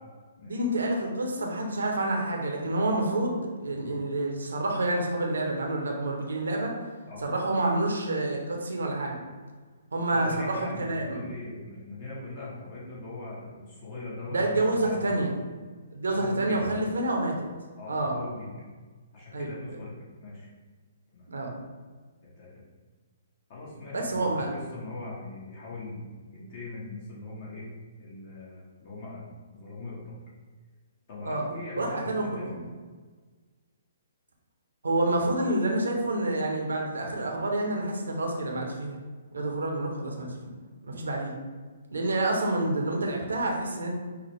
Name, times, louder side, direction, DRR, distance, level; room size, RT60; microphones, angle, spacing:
voice 1, 0.4-6.7 7.2-9.2 9.9-11.3 14.3-15.4 15.9-17.5 17.9-18.1 19.3-19.5 21.3-21.6 23.9-24.5 31.2-31.4 31.8-32.6 34.8-38.9 39.3-40.5 40.8-41.3 41.9-43.9, right 2 dB, 75° right, 1 dB, 0.8 m, -28 dB
voice 2, 10.1-15.2 16.1-16.7 17.8-18.5 19.1-20.5 21.1-21.5 22.2-22.6 23.5-26.1 26.3-27.7 28.0-30.2 31.1-32.5, left 2 dB, 45° left, -6 dB, 1.3 m, -41 dB
5.8 x 2.1 x 3.1 m, 1.4 s
figure-of-eight pair, 125°, 0 cm